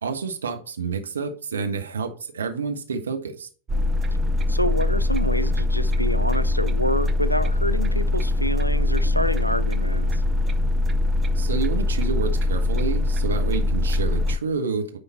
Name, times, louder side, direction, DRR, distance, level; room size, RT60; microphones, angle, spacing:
voice 1, 0.0-3.5 11.3-15.0, right 5 dB, 70° right, 5 dB, 1.1 m, -29 dB
sound 1, 3.7-14.4, left 2 dB, 20° right, 0.7 m, -22 dB
voice 2, 4.5-10.2, equal, 90° left, 14 dB, 0.5 m, -27 dB
9.6 x 3.8 x 4.2 m, 0.40 s
figure-of-eight pair, 90°, 0 cm